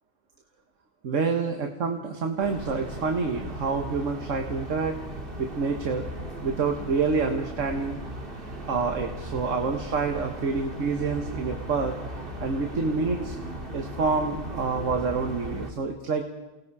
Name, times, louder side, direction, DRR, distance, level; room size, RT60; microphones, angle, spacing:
voice 1, 1.0-5.0 5.4-6.0 6.4-8.0 8.6-12.0 12.4-13.4 13.7-16.3, right 4 dB, 90° right, 4 dB, 1.7 m, -27 dB
sound 1, 2.4-15.7, right 1 dB, 45° right, 2.4 m, -37 dB
29.5 x 19.0 x 4.8 m, 1.1 s
omnidirectional pair, 1.3 m